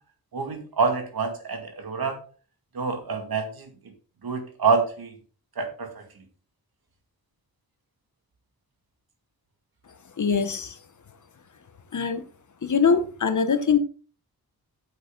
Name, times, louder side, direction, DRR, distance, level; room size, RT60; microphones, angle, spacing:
voice 1, 0.3-2.2 2.7-3.7 4.2-5.1 5.6-6.0, right 4 dB, 70° right, 2.3 m, -26 dB
voice 2, 10.2-10.8 11.9-12.2 12.6-13.8, left 6 dB, 50° left, 1.0 m, -22 dB
9.1 x 8.1 x 3.9 m
wide cardioid pair, 155°, 38 cm